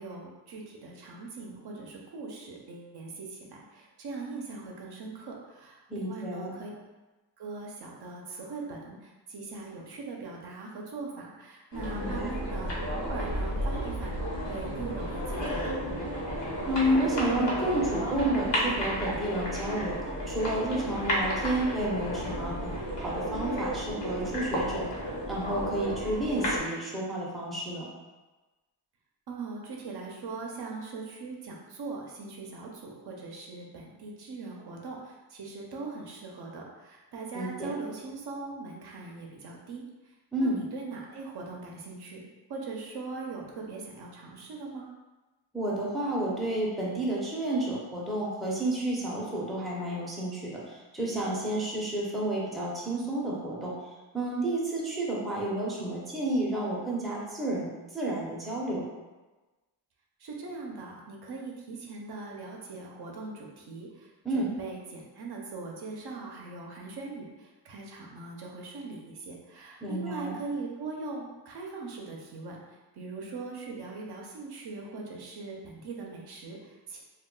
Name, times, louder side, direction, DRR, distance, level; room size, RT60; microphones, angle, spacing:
voice 1, 0.0-6.7 7.4-15.8 29.3-40.1 40.4-42.2 42.5-44.9 60.2-72.6 72.9-77.0, right 3 dB, 60° right, -1 dB, 0.6 m, -41 dB
voice 2, 5.9-6.5 11.9-12.3 16.7-20.0 20.3-22.7 23.0-24.8 25.3-27.9 37.3-37.7 40.3-40.6 45.5-53.7 54.1-57.7 57.9-58.8 64.2-64.5 69.8-70.3, right 1 dB, ahead, -5 dB, 0.5 m, -30 dB
sound 1, 11.7-26.6, equal, 70° left, 0.9 m, -32 dB
2.3 x 2.1 x 3.7 m, 1.2 s
wide cardioid pair, 115°, 44 cm